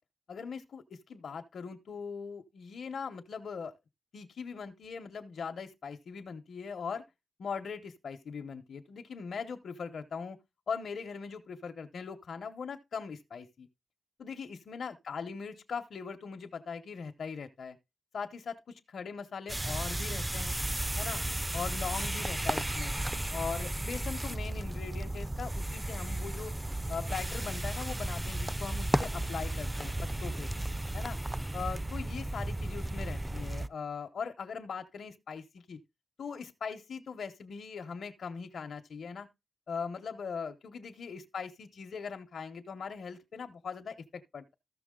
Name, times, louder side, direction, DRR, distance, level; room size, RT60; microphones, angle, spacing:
voice 1, 0.3-3.7 4.1-7.0 7.4-10.4 10.7-13.7 14.2-17.8 18.1-20.6 21.0-21.2 21.5-23.0 23.3-26.6 26.9-30.5 30.9-31.2 31.5-35.8 36.2-39.3 39.7-44.5, left 5 dB, 85° left, 0.8 m, -40 dB
sound 1, 19.5-33.7, right 1 dB, 15° right, 0.5 m, -34 dB
14.0 x 6.1 x 3.7 m
cardioid pair, 60°, 0 cm